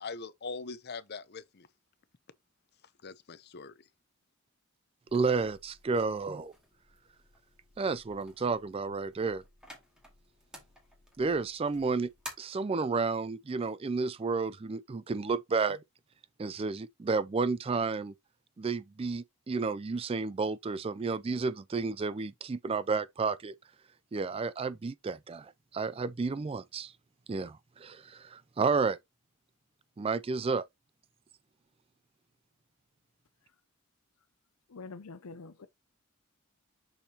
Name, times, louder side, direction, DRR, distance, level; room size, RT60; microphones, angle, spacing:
voice 1, 0.0-1.7 3.0-3.7, left 4 dB, 50° left, 0.7 m, -42 dB
sound 1, 5.1-12.3, left 1 dB, 5° right, 2.2 m, -53 dB
voice 2, 5.1-6.5 7.8-9.4 11.2-12.1 12.4-15.8 16.4-18.1 18.6-23.5 24.1-26.9 27.3-29.0 30.0-30.6, right 4 dB, 25° right, 0.3 m, -31 dB
voice 3, 34.7-35.7, left 4 dB, 90° left, 0.6 m, -45 dB
6.4 x 5.5 x 2.9 m
head